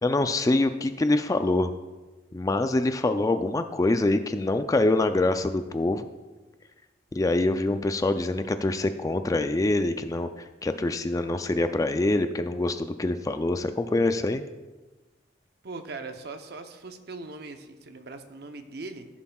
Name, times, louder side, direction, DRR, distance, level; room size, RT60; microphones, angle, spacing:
voice 1, 0.0-1.7 2.3-6.0 7.1-10.3 10.6-14.4, left 2 dB, 20° left, 9 dB, 0.3 m, -25 dB
voice 2, 15.6-19.1, right 3 dB, 60° right, 7 dB, 0.7 m, -40 dB
15.5 x 7.2 x 2.3 m, 1.2 s
head